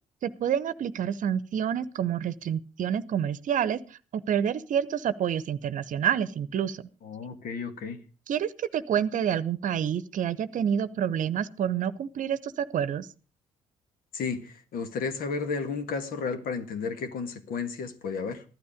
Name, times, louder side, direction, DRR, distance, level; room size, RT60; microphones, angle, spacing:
voice 1, 0.2-6.8 8.3-13.1, right 9 dB, 50° right, 15 dB, 0.9 m, -28 dB
voice 2, 7.0-8.0 14.1-18.4, left 5 dB, 60° left, 9 dB, 1.8 m, -33 dB
14.5 x 12.0 x 5.1 m, 0.35 s
figure-of-eight pair, 45°, 17 cm